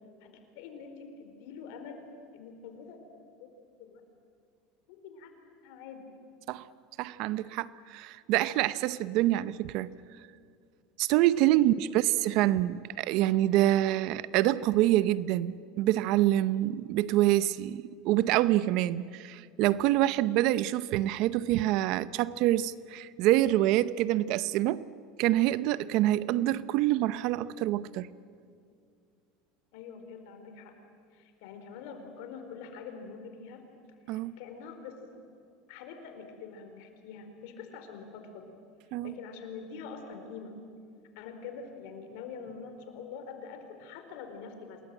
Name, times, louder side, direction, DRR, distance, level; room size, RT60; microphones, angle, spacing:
voice 1, 0.2-2.0 2.3-3.0 3.4-3.5 3.8-4.0 4.9-6.1 11.6-12.0 29.7-30.7 31.1-33.6 34.1-35.2 35.7-38.5 39.0-40.5 41.2-44.8, left 5 dB, 70° left, 4.4 m, -45 dB
voice 2, 7.0-9.9 11.0-24.9 25.2-28.1 34.1-34.4 38.9-39.1, right 14 dB, 60° right, 0.7 m, -26 dB
27.5 x 20.5 x 9.0 m
supercardioid pair, 130°, 0 cm